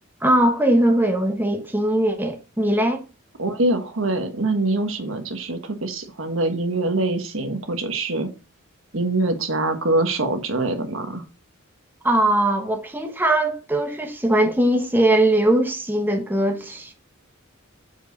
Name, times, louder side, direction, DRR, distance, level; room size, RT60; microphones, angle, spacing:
voice 1, 0.2-3.0 12.0-16.9, right 1 dB, 10° right, 1.0 m, -20 dB
voice 2, 3.4-8.3 8.9-11.2, right 2 dB, 70° right, 1.5 m, -24 dB
7.4 x 5.4 x 4.0 m
head